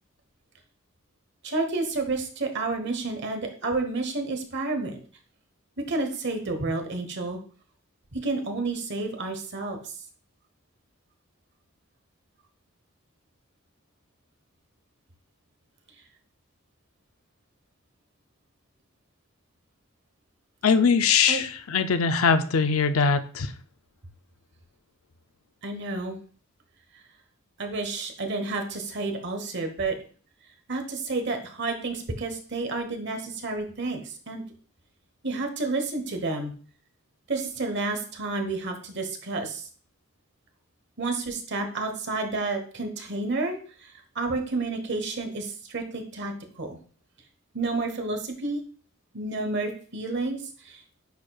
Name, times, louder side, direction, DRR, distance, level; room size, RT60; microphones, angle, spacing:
voice 1, 1.4-5.0 5.9-7.4 8.1-9.8 21.3-21.4 25.6-26.2 27.6-29.9 30.7-34.4 35.2-36.5 37.3-39.7 41.0-43.9 44.1-46.8 47.5-48.6 49.1-50.8, right 3 dB, 55° right, 5 dB, 1.1 m, -30 dB
voice 2, 20.6-23.5, left 5 dB, 75° left, 10 dB, 0.5 m, -22 dB
9.4 x 4.4 x 2.3 m, 0.42 s
head